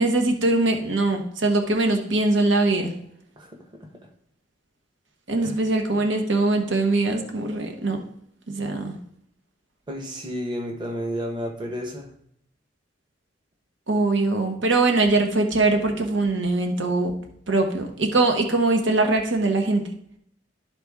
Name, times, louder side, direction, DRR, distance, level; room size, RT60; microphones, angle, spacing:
voice 1, 0.0-2.9 5.3-8.0 8.5-8.9 13.9-17.1 17.5-19.8, right 2 dB, 85° right, 4 dB, 1.1 m, -22 dB
voice 2, 3.4-3.9 5.4-5.6 9.9-12.1, equal, 25° right, 1 dB, 1.1 m, -32 dB
12.5 x 4.2 x 3.5 m, 0.71 s
head